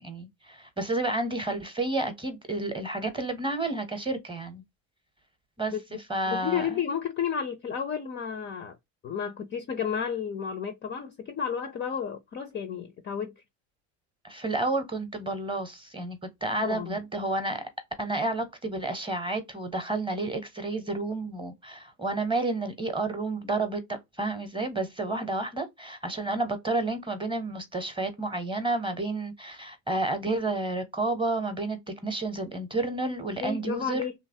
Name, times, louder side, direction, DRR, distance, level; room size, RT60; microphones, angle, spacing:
voice 1, 0.0-4.6 5.6-5.7 6.1-6.7 14.2-17.6 18.0-34.0, right 2 dB, 10° right, 0.8 m, -30 dB
voice 2, 6.3-8.8 9.0-13.3 16.6-17.0 33.4-34.1, left 7 dB, 25° left, 0.4 m, -32 dB
2.9 x 2.2 x 2.6 m
hypercardioid pair, 85°, 47 cm